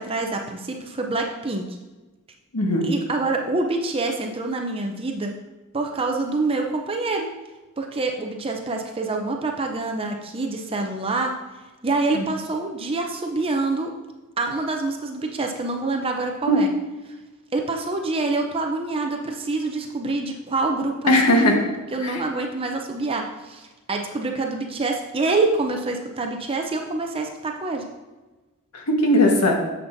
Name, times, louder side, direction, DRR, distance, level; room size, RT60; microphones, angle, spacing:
voice 1, 0.0-1.6 2.8-5.3 5.7-7.3 7.8-11.3 11.8-13.9 14.4-16.7 17.5-21.4 21.9-27.8, right 3 dB, 25° right, 3 dB, 0.6 m, -26 dB
voice 2, 2.5-2.9 12.1-12.2 16.5-16.6 21.1-21.6 22.0-22.2 28.7-29.5, left 1 dB, 85° left, 1 dB, 1.4 m, -18 dB
9.2 x 7.3 x 2.7 m, 1.2 s
head